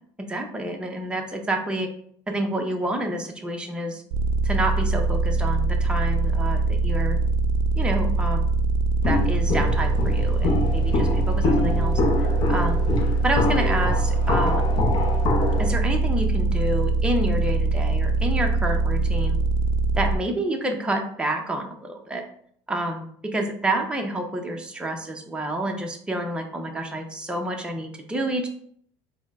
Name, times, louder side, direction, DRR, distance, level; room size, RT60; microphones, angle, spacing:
voice 1, 0.3-1.9 2.3-4.0 4.4-7.2 7.7-8.5 9.0-12.8 13.2-14.7 15.6-19.4 20.0-22.2 22.7-23.1 23.3-28.5, right 1 dB, 10° right, 2 dB, 0.6 m, -28 dB
sound 1, 4.1-20.2, right 3 dB, 65° right, 0.4 m, -23 dB
Walk footsteps, 9.0-15.7, left 3 dB, 45° left, 0.7 m, -26 dB
4.2 x 2.0 x 3.4 m, 0.63 s
supercardioid pair, 120°, 11 cm